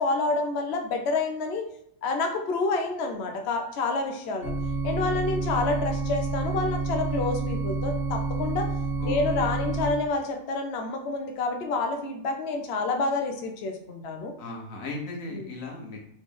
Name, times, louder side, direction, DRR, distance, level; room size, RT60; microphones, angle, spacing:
voice 1, 0.0-1.6 2.0-4.5 4.8-8.7 9.0-14.3 15.3-15.4, left 3 dB, 60° left, 3 dB, 0.8 m, -28 dB
sound 1, 4.4-9.9, right 3 dB, 70° right, 1.6 m, -29 dB
voice 2, 9.0-9.5 14.4-16.0, left 2 dB, 80° left, 1 dB, 1.4 m, -36 dB
3.9 x 3.3 x 3.5 m, 0.73 s
omnidirectional pair, 1.4 m